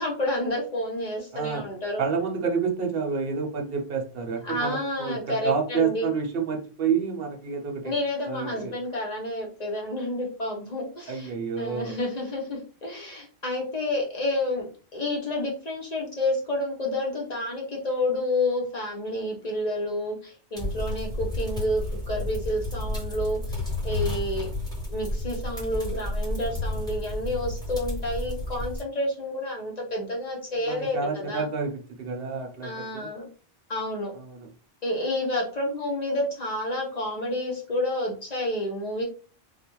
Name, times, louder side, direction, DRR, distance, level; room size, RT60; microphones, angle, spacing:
voice 1, 0.0-2.0 4.4-6.1 7.8-14.7 14.9-24.5 24.9-31.5 32.6-33.3 33.7-34.1 34.8-39.0, left 1 dB, 45° left, -2 dB, 0.7 m, -29 dB
voice 2, 1.3-1.7 2.0-7.9 8.3-8.7 11.1-12.0 30.7-33.1 34.1-34.5, right 5 dB, 65° right, 2 dB, 0.8 m, -29 dB
sound 1, 20.6-28.8, left 2 dB, 5° left, 1.0 m, -31 dB
2.3 x 2.1 x 2.9 m, 0.37 s
omnidirectional pair, 1.1 m